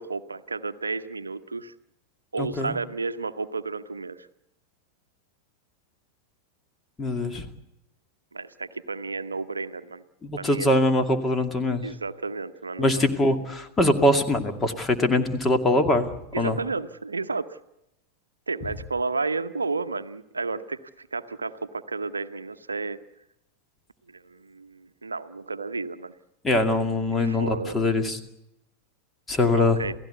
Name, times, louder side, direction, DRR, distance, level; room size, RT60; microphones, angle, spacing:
voice 1, 0.0-1.7 2.3-4.3 8.3-10.0 10.4-10.7 11.8-13.0 16.3-17.6 18.5-23.0 24.1-26.1 27.2-27.8 29.6-29.9, right 4 dB, 75° right, 12 dB, 0.9 m, -32 dB
voice 2, 2.4-2.8 7.0-7.4 10.2-11.9 12.8-16.1 16.3-16.6 26.4-28.2 29.3-29.8, left 1 dB, 15° left, 7 dB, 2.3 m, -23 dB
28.5 x 16.5 x 8.2 m, 0.86 s
figure-of-eight pair, 90°, 0 cm